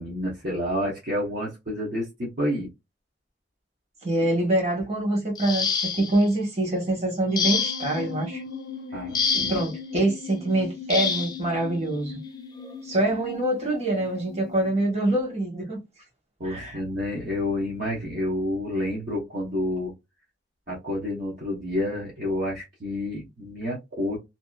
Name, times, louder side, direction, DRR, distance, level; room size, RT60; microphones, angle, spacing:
voice 1, 0.0-2.7 8.9-9.6 16.4-19.9 20.7-24.2, left 1 dB, 55° right, 0.8 m, -29 dB
voice 2, 4.0-8.4 9.3-12.2 12.8-15.8 16.4-16.8, right 1 dB, 35° right, 1.2 m, -25 dB
sound 1, 5.4-6.3 7.4-8.0 9.1-9.7 10.9-11.4 12.6-12.7 13.2-13.4, left 5 dB, 25° left, 0.5 m, -26 dB
sound 2, 7.4-14.9, left 4 dB, 85° left, 0.5 m, -39 dB
2.7 x 2.3 x 2.2 m
head